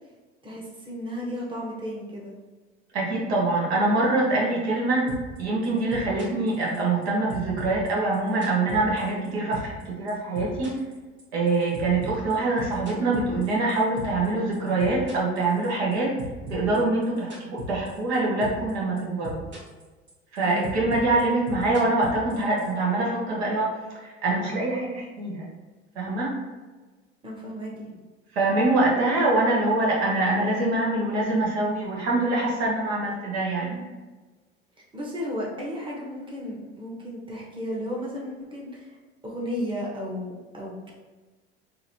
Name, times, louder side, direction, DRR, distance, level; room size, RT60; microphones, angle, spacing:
voice 1, 0.4-2.3 20.4-20.9 27.2-28.0 34.9-39.0 39.2-40.9, equal, 15° right, -4 dB, 1.1 m, -34 dB
voice 2, 2.9-5.1 5.4-10.8 11.3-16.2 16.5-19.4 20.3-25.5 25.9-26.4 28.3-33.8, right 2 dB, 70° right, -4 dB, 1.1 m, -24 dB
sound 1, 5.1-5.4 5.6-7.0 7.3-9.3 9.5-9.8 10.1-14.3 14.5-15.9 16.2-18.2 18.4-18.7 19.0-19.8 20.1-22.7, equal, 35° right, 1.3 m, -38 dB
4.1 x 2.8 x 2.7 m, 1.3 s
hypercardioid pair, 75°, 33 cm